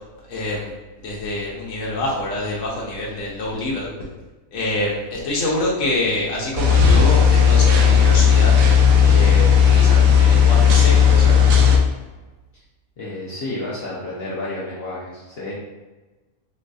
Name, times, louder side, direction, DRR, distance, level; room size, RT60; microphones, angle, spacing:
voice 1, 0.3-0.7 1.0-3.9 4.5-8.5 9.0-11.3, left 1 dB, 75° left, -4 dB, 1.1 m, -26 dB
sound 1, 6.6-11.8, left 7 dB, 90° right, 1.0 m, -14 dB
voice 2, 13.0-15.5, left 2 dB, 55° left, -7 dB, 0.8 m, -31 dB
3.9 x 2.5 x 2.3 m, 1.2 s
omnidirectional pair, 1.4 m